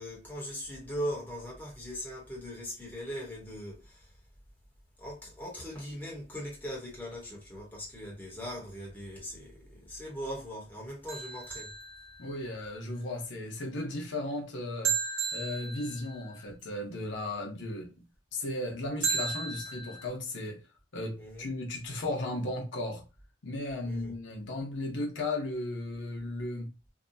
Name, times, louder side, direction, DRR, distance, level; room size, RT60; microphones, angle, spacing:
voice 1, 0.0-4.1 5.0-11.7 21.2-21.5 23.8-24.1, equal, 10° left, 1.0 m, -40 dB
sound 1, 11.1-12.6 14.8-16.5 19.0-20.1, right 6 dB, 80° right, 1.1 m, -34 dB
voice 2, 12.2-15.0 15.3-17.9 18.3-20.6 20.9-23.0 23.4-26.7, left 2 dB, 80° left, 0.8 m, -35 dB
2.8 x 2.2 x 2.6 m
head